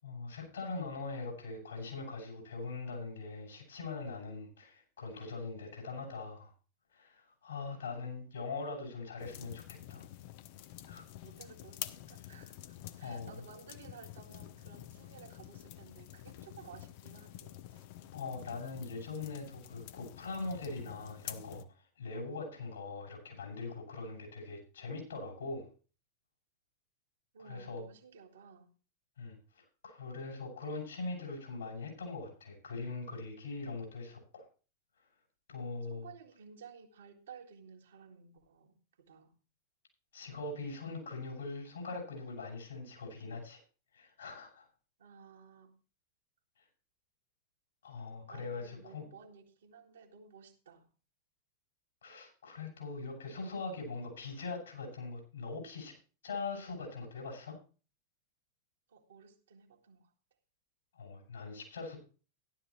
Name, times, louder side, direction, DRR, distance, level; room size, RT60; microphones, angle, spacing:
voice 1, 0.0-6.5 6.9-9.6 9.9-10.1 10.9-11.0 13.0-13.4 18.1-21.6 22.0-25.6 27.4-27.8 29.2-34.4 35.5-36.1 40.1-43.6 43.9-44.7 47.8-49.0 52.0-55.9 56.2-57.6 60.9-62.0, left 3 dB, 70° left, 6.8 m, -42 dB
sound 1, 9.2-21.7, left 13 dB, 50° left, 0.8 m, -49 dB
voice 2, 11.2-17.8 27.3-28.7 35.8-39.4 45.0-45.8 48.3-50.9 58.9-60.1, right 6 dB, 65° right, 2.0 m, -55 dB
15.0 x 12.0 x 3.2 m
figure-of-eight pair, 90°, 0 cm